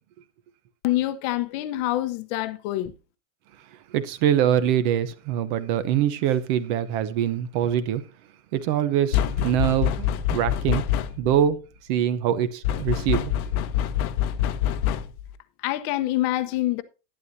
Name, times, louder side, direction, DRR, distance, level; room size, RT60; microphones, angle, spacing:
voice 1, 0.8-2.9 15.6-16.8, left 15 dB, 35° left, 0.9 m, -26 dB
voice 2, 3.9-8.0 8.5-10.8 11.2-11.6 11.9-13.3, right 10 dB, 35° right, 0.9 m, -24 dB
sound 1, 9.1-11.4 12.6-15.3, left 11 dB, 85° left, 1.2 m, -25 dB
11.5 x 11.0 x 2.7 m
supercardioid pair, 180°, 42 cm